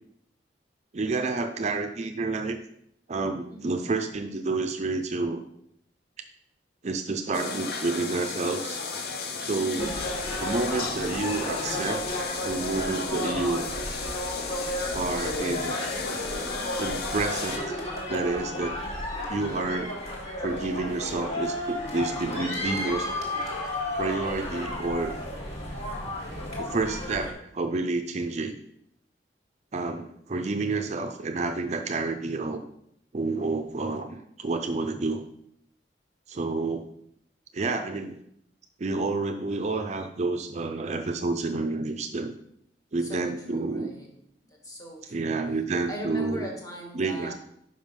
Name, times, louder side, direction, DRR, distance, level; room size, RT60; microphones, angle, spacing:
voice 1, 0.9-2.6 3.1-5.4 6.8-8.8 9.4-9.9 10.4-12.0 12.4-13.7 14.9-15.9 16.8-17.7 18.1-18.8 19.3-20.0 20.4-23.1 24.0-25.2 26.6-28.6 29.7-32.6 33.1-35.3 36.3-36.9 37.5-38.2 38.8-42.3 42.9-43.9 45.1-46.5 46.9-47.3, right 3 dB, 40° right, 7 dB, 0.4 m, -29 dB
voice 2, 3.5-3.8 9.7-10.0 43.0-44.1 44.4-45.3 45.9-47.3, right 1 dB, 20° left, 0 dB, 1.7 m, -39 dB
sound 1, 7.3-17.6, left 4 dB, 60° left, 0.8 m, -34 dB
sound 2, 9.8-27.3, left 1 dB, 35° left, 1.8 m, -33 dB
5.4 x 5.4 x 5.2 m, 0.73 s
head